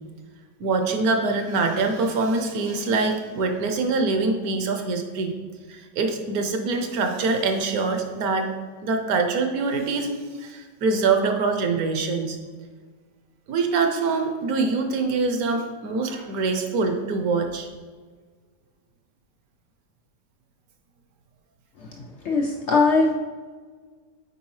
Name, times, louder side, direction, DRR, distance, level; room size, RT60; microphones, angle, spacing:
voice 1, 0.6-5.3 5.7-8.5 8.8-10.1 10.4-12.4 13.5-17.7, right 3 dB, 65° right, 5 dB, 1.1 m, -24 dB
voice 2, 22.2-23.1, left 3 dB, 75° left, 0 dB, 0.6 m, -20 dB
8.2 x 4.6 x 3.1 m, 1.5 s
omnidirectional pair, 1.8 m